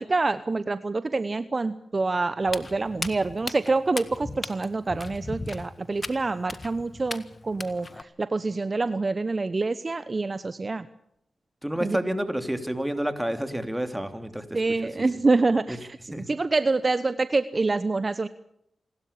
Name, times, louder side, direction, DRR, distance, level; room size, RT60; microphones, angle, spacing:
voice 1, 0.0-10.9 11.8-12.0 14.5-18.3, right 3 dB, 40° right, 13 dB, 0.9 m, -26 dB
Walk footsteps, 2.4-8.0, left 2 dB, 35° left, 1.6 m, -38 dB
voice 2, 11.6-14.6 15.7-15.8 16.1-16.2, right 1 dB, 10° right, 8 dB, 3.2 m, -29 dB
27.5 x 12.5 x 8.6 m, 0.74 s
supercardioid pair, 45°, 0 cm